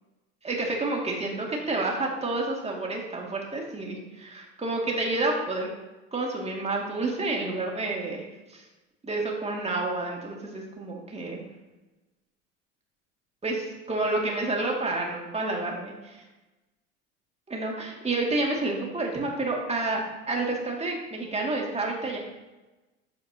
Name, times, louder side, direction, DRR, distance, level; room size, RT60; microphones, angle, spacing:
voice 1, 0.4-5.7 6.1-8.2 8.5-8.6 9.0-11.4 13.4-16.2 17.5-20.0 20.3-22.2, right 2 dB, 15° right, -1 dB, 2.2 m, -29 dB
12.5 x 5.0 x 2.9 m, 1.1 s
hypercardioid pair, 70°, 37 cm